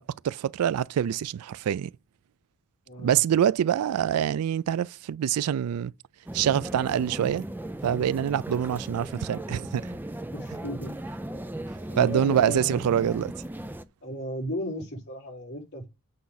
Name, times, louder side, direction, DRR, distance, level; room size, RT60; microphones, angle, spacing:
voice 1, 0.0-1.9 3.0-5.9 6.3-7.5 7.8-9.9 12.0-13.3, right 9 dB, 80° right, 0.3 m, -25 dB
voice 2, 2.9-3.2 10.3-10.9 11.9-13.1 14.0-15.9, equal, 50° left, 4.9 m, -35 dB
sound 1, 6.3-13.8, right 1 dB, 10° right, 0.5 m, -37 dB
8.4 x 5.6 x 4.1 m
head